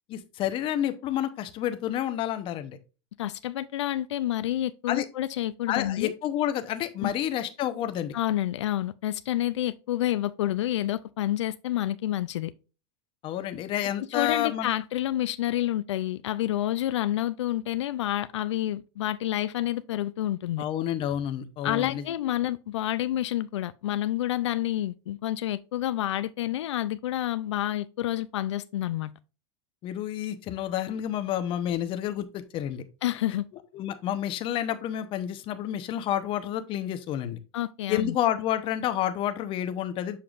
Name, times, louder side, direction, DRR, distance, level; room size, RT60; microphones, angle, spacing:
voice 1, 0.1-2.8 4.9-5.1 5.7-8.1 13.2-14.7 20.6-22.3 29.8-32.8 33.7-37.4 37.9-40.2, left 11 dB, 35° left, 0.9 m, -29 dB
voice 2, 3.2-6.1 7.0-7.1 8.1-12.5 14.0-20.6 21.6-29.1 33.0-33.5 37.5-38.2, left 13 dB, 90° left, 0.4 m, -29 dB
6.9 x 5.7 x 2.4 m
supercardioid pair, 125°, 15 cm